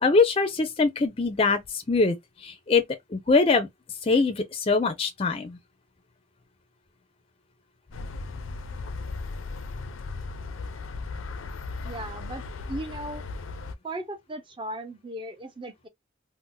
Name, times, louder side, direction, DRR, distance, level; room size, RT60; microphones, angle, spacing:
voice 1, 0.0-2.2 2.4-2.8 3.1-3.7 4.1-5.6, left 4 dB, 30° left, 0.4 m, -23 dB
sound 1, 7.9-13.7, left 3 dB, 90° left, 0.5 m, -36 dB
voice 2, 11.8-13.2 13.8-15.9, right 1 dB, 25° right, 0.6 m, -37 dB
2.6 x 2.1 x 3.7 m
head